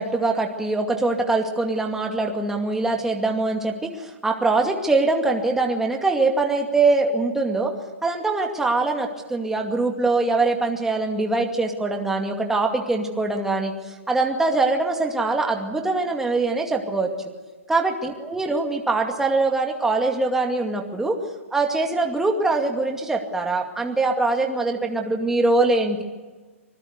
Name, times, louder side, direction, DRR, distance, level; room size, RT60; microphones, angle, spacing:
voice 1, 0.0-7.7 8.0-13.7 14.1-17.1 17.7-21.2 21.5-26.0, right 3 dB, 5° right, 2 dB, 2.3 m, -23 dB
25.5 x 20.5 x 8.2 m, 1.3 s
hypercardioid pair, 135°, 8 cm